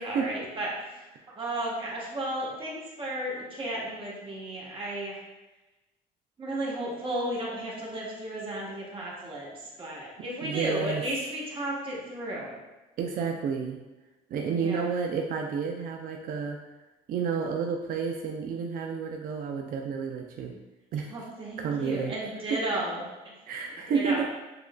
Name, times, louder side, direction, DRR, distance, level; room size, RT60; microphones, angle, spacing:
voice 1, 0.0-5.2 6.4-12.5 14.4-14.9 21.0-23.0 23.7-24.2, right 1 dB, 30° right, -5 dB, 1.1 m, -34 dB
voice 2, 10.4-11.0 13.0-13.8 14.3-16.6 17.1-20.5 20.9-21.1 21.6-22.1 23.5-24.2, right 6 dB, 55° right, 2 dB, 0.4 m, -30 dB
6.8 x 2.4 x 2.2 m, 1.1 s
cardioid pair, 110°, 17 cm